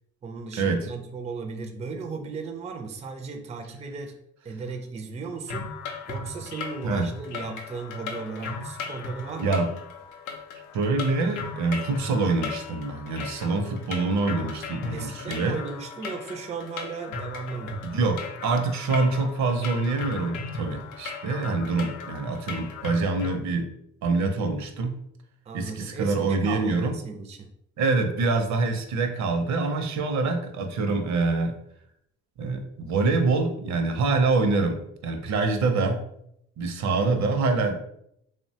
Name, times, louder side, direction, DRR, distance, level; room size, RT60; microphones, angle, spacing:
voice 1, 0.2-4.2 4.4-5.7 6.1-9.6 14.9-17.8 25.5-27.5, right 4 dB, 25° right, 3 dB, 0.3 m, -36 dB
sound 1, 5.5-23.4, left 4 dB, 85° left, 0.5 m, -37 dB
voice 2, 9.4-9.7 10.7-15.6 17.8-23.7 24.0-25.0 25.5-27.0 27.8-31.6 32.4-34.8 35.0-36.0 36.6-37.8, right 3 dB, 65° right, 5 dB, 0.6 m, -25 dB
2.9 x 2.1 x 2.7 m, 0.75 s
cardioid pair, 90°, 30 cm